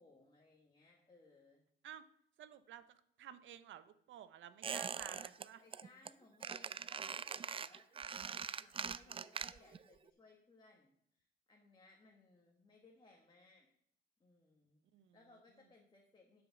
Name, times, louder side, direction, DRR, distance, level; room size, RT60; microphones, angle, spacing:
voice 1, 0.0-1.6 4.7-5.3 5.6-13.7 14.2-14.8 15.1-16.4, left 3 dB, 25° left, -1 dB, 1.6 m, -65 dB
voice 2, 2.4-5.6 14.9-15.2, right 10 dB, 75° right, 12 dB, 0.8 m, -53 dB
Squeak, 4.6-5.5 5.7-6.1 6.4-9.8 10.1-10.2, right 6 dB, 30° right, 0.4 m, -42 dB
11.0 x 5.3 x 5.9 m, 0.70 s
cardioid pair, 90°, 20 cm